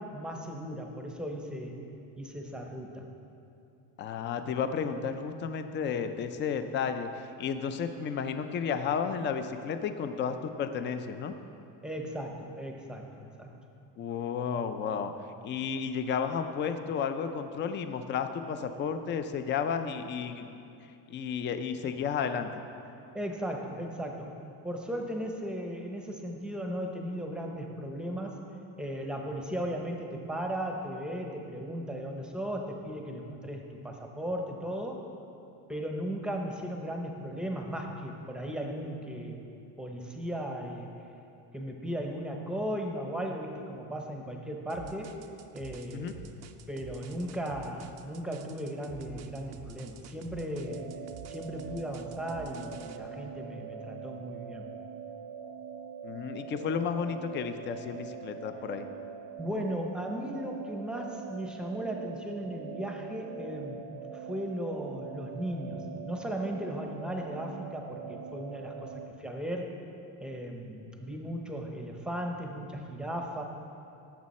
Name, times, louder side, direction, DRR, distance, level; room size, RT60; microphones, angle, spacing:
voice 1, 0.0-1.8 2.2-3.1 11.8-13.5 23.1-24.3 24.6-28.4 28.8-35.0 35.7-39.4 39.8-40.9 41.5-45.2 45.5-46.3 46.7-50.9 51.3-54.7 59.4-63.8 64.1-69.7 70.2-73.4, equal, ahead, 1 dB, 0.7 m, -36 dB
voice 2, 4.0-11.3 14.0-15.1 15.4-20.5 21.1-22.5 45.9-46.1 56.0-58.9, left 6 dB, 30° left, 9 dB, 0.4 m, -32 dB
sound 1, 44.7-53.0, right 8 dB, 40° right, 0.4 m, -48 dB
sound 2, 50.6-69.1, right 7 dB, 85° right, 1.0 m, -43 dB
18.0 x 7.3 x 4.2 m, 2.7 s
cardioid pair, 175°, 43 cm